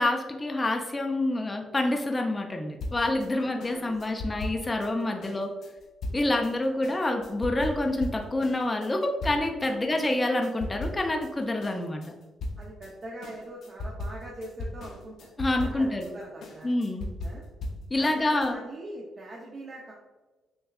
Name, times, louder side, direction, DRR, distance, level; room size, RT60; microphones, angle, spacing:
voice 1, 0.0-5.5 6.1-12.0 15.4-16.1 16.6-17.1 17.9-18.5, left 2 dB, 20° left, 3 dB, 0.5 m, -27 dB
sound 1, 2.8-9.7 10.0-11.3 11.6-18.5, left 1 dB, 65° left, 0.6 m, -38 dB
voice 2, 3.3-4.2 5.1-5.3 9.6-10.2 12.6-15.3 15.6-16.7 17.2-17.4 18.0-19.9, right 1 dB, 40° right, -3 dB, 0.6 m, -43 dB
6.2 x 2.3 x 2.3 m, 1.2 s
cardioid pair, 90°, 0 cm